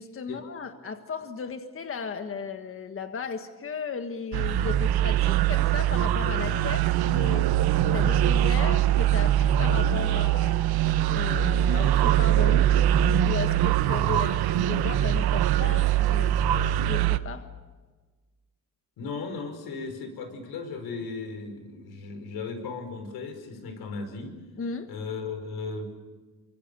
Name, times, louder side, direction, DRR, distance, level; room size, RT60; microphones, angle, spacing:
voice 1, 0.0-7.5 7.9-10.6 11.1-12.9 13.2-16.4 16.8-17.5 24.6-24.9, left 5 dB, 35° left, 7 dB, 1.6 m, -35 dB
sound 1, 4.3-17.2, right 11 dB, 90° right, 1.1 m, -23 dB
voice 2, 19.0-24.3 24.9-25.9, left 4 dB, 85° left, 7 dB, 5.3 m, -36 dB
29.0 x 25.0 x 6.9 m, 1.3 s
cardioid pair, 135°, 37 cm